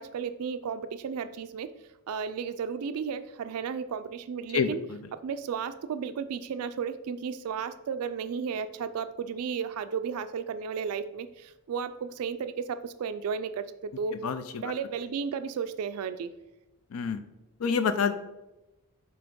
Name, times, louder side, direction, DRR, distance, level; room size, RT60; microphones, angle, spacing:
voice 1, 0.0-1.7 2.1-4.8 5.2-14.2 14.6-16.3, right 6 dB, 75° right, 11 dB, 0.4 m, -34 dB
voice 2, 4.5-5.1 14.2-14.7 16.9-17.2 17.6-18.1, left 6 dB, 70° left, 10 dB, 0.4 m, -28 dB
7.0 x 2.9 x 5.2 m, 1.0 s
head